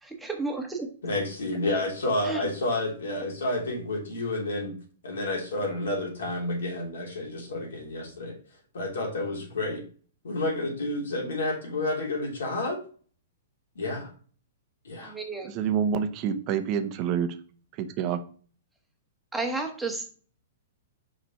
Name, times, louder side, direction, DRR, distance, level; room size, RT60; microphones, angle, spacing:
voice 1, 0.0-0.9 2.2-2.4 15.0-15.5 19.3-20.1, right 3 dB, 5° right, 1.4 m, -32 dB
voice 2, 1.0-4.8 5.0-8.3 8.7-9.8 10.2-12.8 13.7-14.1 14.8-15.1, left 2 dB, 80° left, 3.1 m, -30 dB
voice 3, 15.4-17.3 18.0-18.2, right 8 dB, 40° right, 0.8 m, -27 dB
5.3 x 5.0 x 4.4 m
hypercardioid pair, 130°, 0 cm